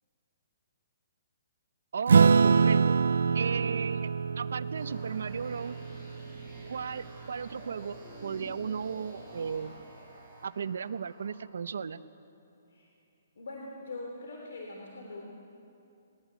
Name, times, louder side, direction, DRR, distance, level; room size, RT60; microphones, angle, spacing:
voice 1, 1.9-3.0 3.3-4.1 4.4-5.8 6.6-9.7 10.4-12.0, right 6 dB, 75° right, 14 dB, 0.8 m, -35 dB
Acoustic guitar / Strum, 2.1-6.9, right 5 dB, 90° right, 0.4 m, -25 dB
sound 1, 4.7-11.4, right 1 dB, 5° left, 6.7 m, -50 dB
voice 2, 13.4-15.2, left 2 dB, 75° left, 0 dB, 3.5 m, -42 dB
21.0 x 20.0 x 8.3 m, 2.7 s
hypercardioid pair, 170°, 0 cm